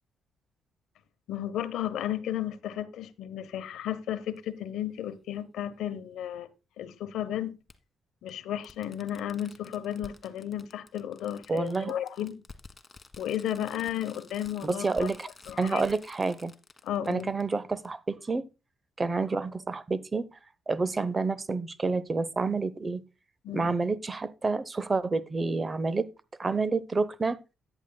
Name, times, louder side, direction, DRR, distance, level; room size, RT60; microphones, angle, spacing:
voice 1, 1.3-6.5 6.8-7.5 8.2-12.4 13.2-15.1 15.5-15.8 16.8-17.3 23.4-23.7, left 11 dB, 80° left, 0.8 m, -33 dB
Fireworks, 4.4-4.5 6.0-6.1 7.7-7.8 8.3-8.4 8.6-17.5 17.8-17.9, left 3 dB, 20° left, 1.3 m, -51 dB
voice 2, 11.5-11.9 14.6-15.3 15.6-16.5 17.1-18.5 19.0-20.4 20.7-23.0 23.5-26.1 26.4-27.4, right 3 dB, 30° right, 0.7 m, -29 dB
14.0 x 9.9 x 2.2 m
cardioid pair, 90°, 0 cm